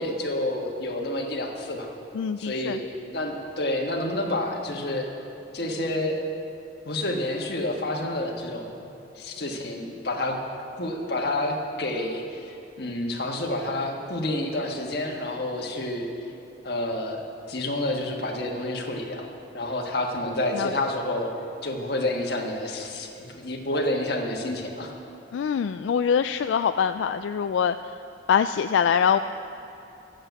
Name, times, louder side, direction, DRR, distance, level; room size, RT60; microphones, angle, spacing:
voice 1, 0.0-1.9 2.4-2.8 3.1-5.1 5.5-6.2 6.8-8.9 9.2-10.4 10.7-16.1 16.6-17.2 17.5-19.3 19.5-21.3 21.6-24.9, left 1 dB, 60° left, 1 dB, 1.5 m, -29 dB
voice 2, 2.1-2.8 20.5-20.7 25.3-27.8 28.3-29.2, left 7 dB, 85° left, 9 dB, 0.3 m, -23 dB
11.5 x 7.7 x 8.0 m, 2.9 s
head